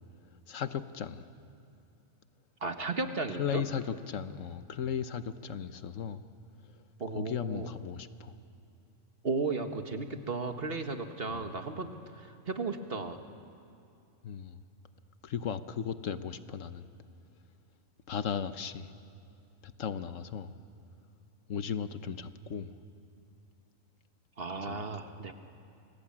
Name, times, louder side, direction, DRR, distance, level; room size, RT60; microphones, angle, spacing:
voice 1, 0.5-1.2 3.4-6.2 7.1-8.3 11.3-11.5 14.2-14.6 15.2-16.9 18.1-18.9 19.6-20.5 21.5-22.7 24.6-24.8, left 7 dB, 70° left, 11 dB, 1.3 m, -36 dB
voice 2, 2.6-3.6 7.0-7.7 9.2-13.2 24.4-25.3, right 3 dB, 45° right, 6 dB, 1.7 m, -35 dB
29.0 x 22.5 x 8.7 m, 2.5 s
omnidirectional pair, 1.4 m